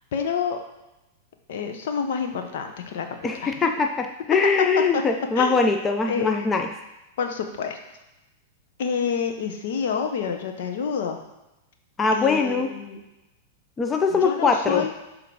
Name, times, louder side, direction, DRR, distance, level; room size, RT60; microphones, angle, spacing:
voice 1, 0.1-0.6 1.5-3.1 3.4-3.5 4.9-5.0 5.4-5.6 6.1-6.5 7.2-7.8 8.8-11.2 12.1-13.0 14.1-14.9, left 6 dB, 70° left, 5 dB, 0.9 m, -28 dB
voice 2, 3.2-6.7 12.0-12.7 13.8-14.9, left 4 dB, 20° left, 5 dB, 0.5 m, -22 dB
6.7 x 3.7 x 4.7 m, 0.97 s
hypercardioid pair, 120°, 0 cm